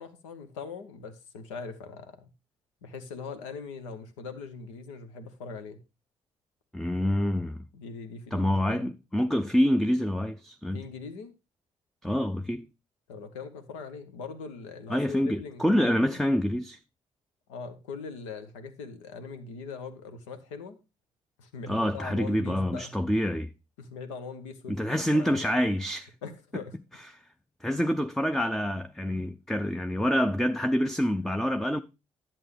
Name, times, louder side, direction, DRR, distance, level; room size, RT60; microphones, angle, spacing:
voice 1, 0.0-2.3 2.8-5.8 7.7-8.9 10.7-11.3 13.1-16.2 17.5-20.8 21.4-22.9 23.8-24.8 25.1-25.5 26.2-26.8 27.7-27.8, left 4 dB, 75° left, 1.0 m, -41 dB
voice 2, 6.7-7.7 8.3-10.8 12.0-12.7 14.9-16.8 21.7-23.5 24.7-26.1 27.1-27.2 27.6-31.8, equal, ahead, 0.5 m, -27 dB
10.5 x 7.4 x 3.3 m
figure-of-eight pair, 40°, 16 cm